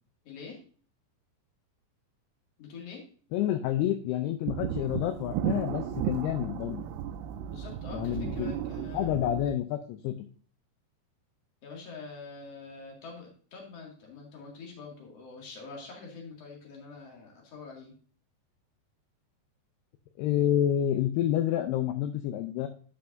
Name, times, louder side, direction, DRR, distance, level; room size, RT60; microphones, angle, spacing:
voice 1, 0.2-0.6 2.6-3.0 7.5-9.1 11.6-17.9, left 4 dB, 45° left, -1 dB, 2.4 m, -45 dB
voice 2, 3.3-6.9 7.9-8.6 8.9-10.2 20.2-22.7, left 11 dB, 85° left, 8 dB, 2.4 m, -29 dB
sound 1, 4.5-9.5, right 10 dB, 85° right, 2.3 m, -34 dB
12.5 x 5.7 x 2.6 m, 0.43 s
omnidirectional pair, 5.1 m